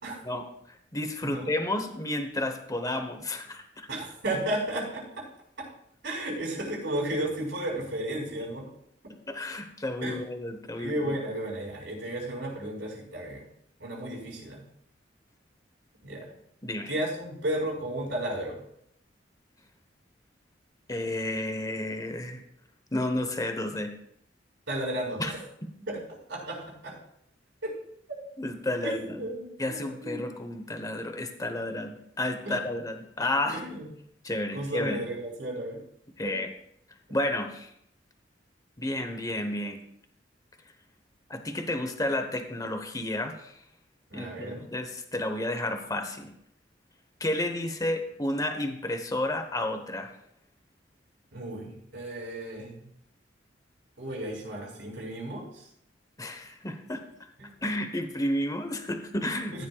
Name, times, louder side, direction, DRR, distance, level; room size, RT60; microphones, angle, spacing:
voice 1, 0.2-3.9 9.3-11.1 16.6-16.9 20.9-22.4 22.9-23.9 25.2-25.3 28.4-29.3 29.6-33.6 34.2-35.0 36.2-36.5 37.1-37.7 38.8-39.8 41.3-43.6 44.1-46.3 47.2-50.1 56.2-57.0 57.6-59.6, left 1 dB, 20° left, 6 dB, 1.0 m, -31 dB
voice 2, 3.9-5.2 5.6-5.7 6.0-8.7 10.0-10.3 10.8-13.5 13.8-14.6 16.0-16.3 16.9-18.6 24.7-25.4 25.9-26.0 26.3-27.0 27.6-27.7 28.1-28.2 28.8-30.2 32.4-32.5 33.5-33.9 34.5-35.8 36.3-36.4 44.1-44.6 51.3-52.9 54.0-55.7 57.4-57.5 59.5-59.6, right 1 dB, 90° right, -2 dB, 4.8 m, -33 dB
14.5 x 10.5 x 2.3 m, 0.73 s
head